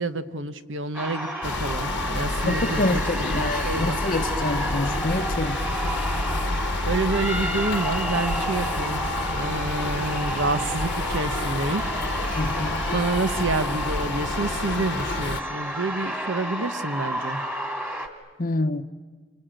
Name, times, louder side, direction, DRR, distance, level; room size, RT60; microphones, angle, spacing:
voice 1, 0.0-4.0 6.9-11.8 12.9-17.4, right 2 dB, 75° right, 1.1 m, -28 dB
sound 1, 0.9-18.1, right 1 dB, 10° right, 2.3 m, -31 dB
sound 2, 1.4-15.4, left 3 dB, 65° left, 1.1 m, -29 dB
voice 2, 2.5-5.6 12.3-12.8 18.4-18.8, left 2 dB, 45° left, 0.9 m, -26 dB
28.0 x 23.0 x 9.0 m
head